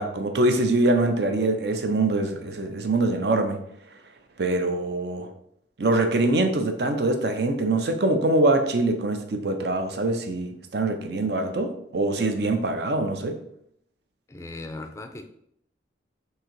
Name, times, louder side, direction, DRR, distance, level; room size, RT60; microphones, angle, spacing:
voice 1, 0.0-3.6 4.4-5.3 5.8-13.4, right 2 dB, 65° right, 6 dB, 0.6 m, -24 dB
voice 2, 14.3-15.3, left 2 dB, 15° left, 6 dB, 0.3 m, -38 dB
3.8 x 2.8 x 4.5 m, 0.72 s
head